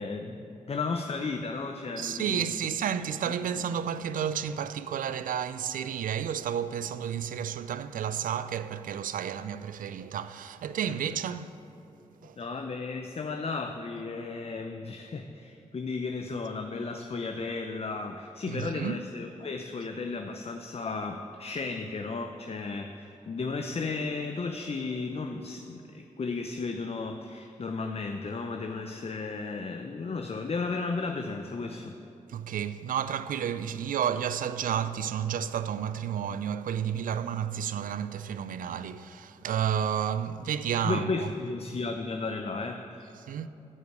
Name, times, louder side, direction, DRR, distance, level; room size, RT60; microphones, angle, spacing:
voice 1, 0.0-2.5 3.2-3.3 10.8-11.1 12.2-32.0 40.8-43.1, left 4 dB, 45° left, 0.7 m, -34 dB
voice 2, 2.0-11.6 12.2-12.4 18.5-19.0 32.3-41.3 43.3-43.5, right 8 dB, 75° right, 0.4 m, -31 dB
11.5 x 5.2 x 8.0 m
supercardioid pair, 45°, 14 cm